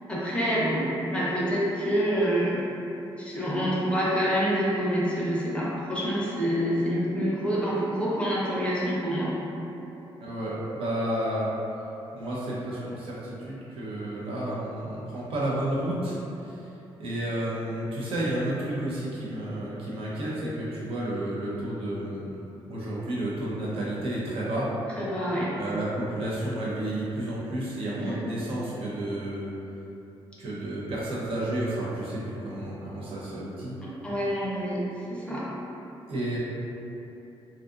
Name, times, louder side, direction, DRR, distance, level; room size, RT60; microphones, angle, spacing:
voice 1, 0.1-2.7 3.2-9.4 25.0-25.5 28.0-28.1 33.8-34.8 35.1-35.5, equal, 10° left, -8 dB, 0.5 m, -27 dB
voice 2, 10.2-11.5 12.1-16.2 16.4-16.6 17.0-22.4 22.7-24.7 25.6-29.5 30.4-33.7 36.1-36.4, right 1 dB, 65° right, -7 dB, 0.6 m, -31 dB
2.6 x 2.4 x 2.4 m, 2.9 s
cardioid pair, 120°, 10 cm